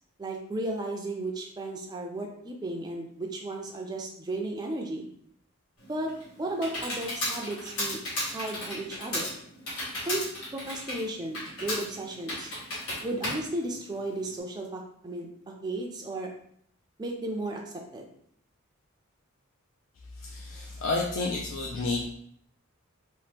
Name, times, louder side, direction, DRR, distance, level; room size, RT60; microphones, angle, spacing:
voice 1, 0.2-5.1 5.9-8.0 8.3-9.3 10.1-10.2 10.5-12.5 13.0-16.3 17.0-18.0, right 1 dB, 20° right, 1 dB, 0.3 m, -34 dB
Computer keyboard, 5.8-14.4, left 1 dB, 90° left, 1.4 m, -35 dB
voice 2, 20.2-22.0, left 3 dB, 65° left, -2 dB, 0.4 m, -30 dB
2.9 x 2.1 x 3.3 m, 0.67 s
head